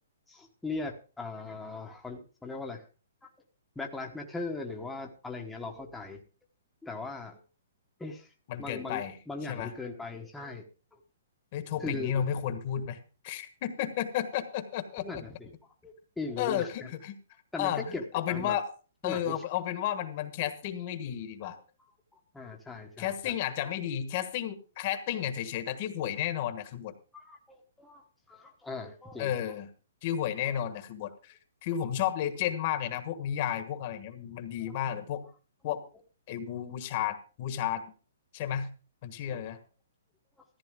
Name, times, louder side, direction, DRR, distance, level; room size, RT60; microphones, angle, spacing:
voice 1, 0.3-2.8 3.2-3.3 3.7-6.2 6.8-7.4 8.0-8.3 8.6-10.6 10.9-11.0 11.8-12.2 15.0-15.5 15.8-16.9 17.5-18.5 19.0-19.4 21.4-21.5 22.1-23.3 27.1-29.3 39.3-39.4, left 3 dB, 5° left, 0 dB, 1.1 m, -39 dB
voice 2, 8.5-9.2 9.5-9.7 11.5-13.0 13.2-15.0 16.4-17.2 17.6-17.8 18.1-18.7 19.0-21.6 23.0-26.9 29.2-29.7 30.0-35.2 35.6-35.8 36.3-37.9 38.3-38.7 39.0-39.6, left 10 dB, 35° left, 9 dB, 1.4 m, -32 dB
14.0 x 9.8 x 3.7 m, 0.36 s
hypercardioid pair, 160°, 0 cm